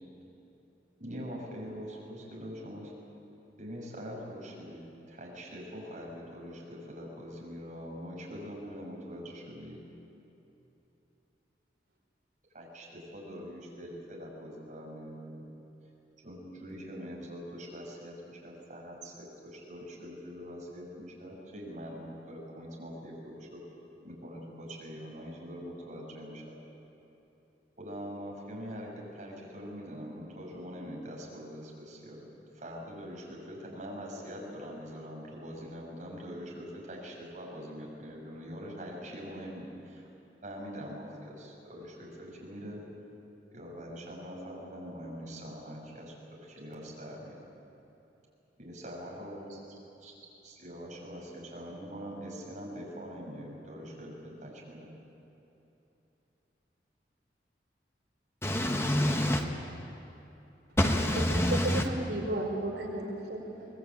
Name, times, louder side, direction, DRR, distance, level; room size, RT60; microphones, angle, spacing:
voice 1, 1.0-2.9 3.6-9.8 12.5-15.4 16.2-23.6 24.0-26.5 27.8-32.3 32.5-40.1 40.4-42.8 43.5-47.3 48.6-49.6 50.0-50.1 50.4-54.9, equal, 45° right, -2 dB, 6.7 m, -43 dB
voice 2, 58.4-59.4 60.8-61.9, left 1 dB, 15° left, 2 dB, 1.4 m, -26 dB
voice 3, 60.8-63.7, right 1 dB, 75° right, 0 dB, 4.6 m, -34 dB
24.5 x 19.5 x 9.0 m, 3.0 s
head